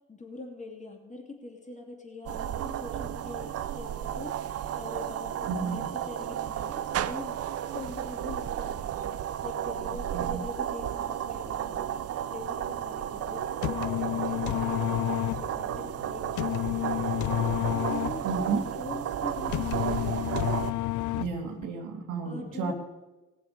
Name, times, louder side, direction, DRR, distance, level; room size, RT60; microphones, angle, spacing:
voice 1, 0.1-17.0 17.3-20.3 22.2-22.7, left 3 dB, 25° left, 0 dB, 3.0 m, -43 dB
sound 1, 2.3-20.7, right 10 dB, 55° right, 0.6 m, -33 dB
voice 2, 5.5-5.8 9.8-10.4 18.2-18.6 21.1-22.7, right 5 dB, 90° right, 3 dB, 2.2 m, -32 dB
sound 2, 13.4-21.6, left 14 dB, 75° left, 0.5 m, -30 dB
19.5 x 7.0 x 5.2 m, 1.1 s
cardioid pair, 90°, 30 cm